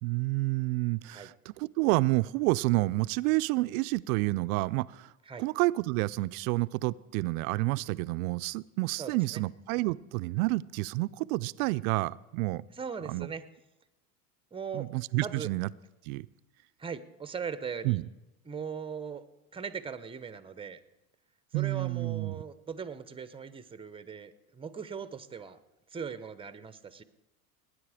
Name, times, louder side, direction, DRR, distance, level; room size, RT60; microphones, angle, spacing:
voice 1, 0.0-5.1 5.4-12.6 13.0-13.3 14.7-15.7 16.0-16.3 17.8-18.1 21.5-22.4, right 21 dB, 65° right, 16 dB, 0.5 m, -29 dB
voice 2, 9.0-9.4 12.7-13.4 14.5-14.9 15.2-15.5 16.8-18.0 18.4-19.2 19.5-20.8 21.5-25.6 25.9-27.0, right 6 dB, 10° right, 13 dB, 0.8 m, -39 dB
19.0 x 9.8 x 4.9 m, 1.0 s
hypercardioid pair, 100°, 46 cm